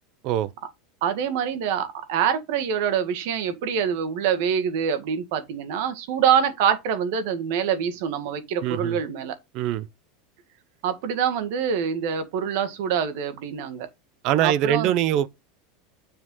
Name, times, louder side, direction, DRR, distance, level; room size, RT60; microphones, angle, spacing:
voice 1, 1.0-9.4 10.8-13.9 14.4-14.9, right 8 dB, 55° right, 1.8 m, -25 dB
voice 2, 8.6-9.0 9.5-9.9 14.2-15.3, right 11 dB, 40° right, 0.7 m, -23 dB
7.1 x 6.1 x 3.8 m
supercardioid pair, 170°, 0 cm